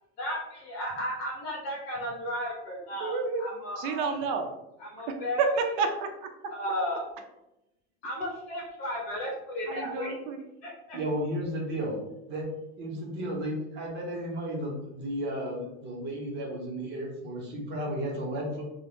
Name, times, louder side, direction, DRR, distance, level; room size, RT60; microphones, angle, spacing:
voice 1, 0.2-4.1 5.0-5.4 6.5-7.0 8.0-10.1 10.6-10.7, equal, 65° left, -2 dB, 0.7 m, -34 dB
voice 2, 3.0-3.5 3.8-4.5 5.0-5.1 5.4-6.3 9.7-10.4, right 4 dB, 65° right, 5 dB, 0.4 m, -29 dB
voice 3, 10.9-12.0 12.3-12.5 12.8-18.7, equal, 35° right, -2 dB, 0.7 m, -33 dB
2.1 x 2.0 x 2.9 m, 0.90 s
cardioid pair, 160°, 32 cm